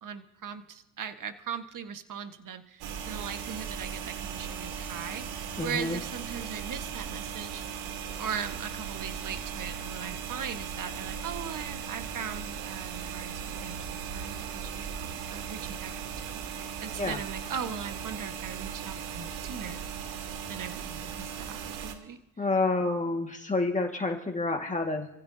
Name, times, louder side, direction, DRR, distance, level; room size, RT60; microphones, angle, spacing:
voice 1, 0.0-7.6 8.2-19.8 20.5-22.2, right 7 dB, 40° right, 8 dB, 1.6 m, -39 dB
sound 1, 2.8-22.0, right 7 dB, 70° right, 2.4 m, -38 dB
voice 2, 5.6-6.0 17.0-17.2 22.4-25.1, left 3 dB, 15° left, 2 dB, 1.9 m, -29 dB
28.5 x 15.5 x 2.8 m, 0.89 s
supercardioid pair, 100°, 50 cm